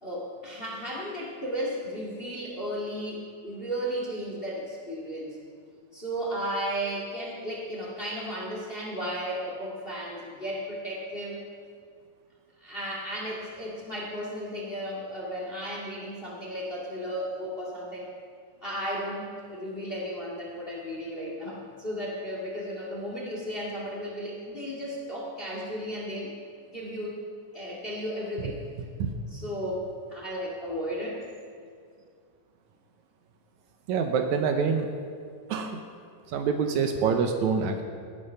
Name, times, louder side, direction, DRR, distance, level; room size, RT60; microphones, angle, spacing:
voice 1, 0.0-5.4 5.9-11.4 12.6-18.1 18.6-26.3 26.7-27.2 27.5-28.6 29.3-31.3, equal, 20° left, -2 dB, 1.9 m, -34 dB
voice 2, 33.9-34.9 35.5-35.9 36.3-37.8, right 6 dB, 75° right, 5 dB, 2.1 m, -26 dB
16.5 x 10.0 x 5.6 m, 2.2 s
omnidirectional pair, 3.6 m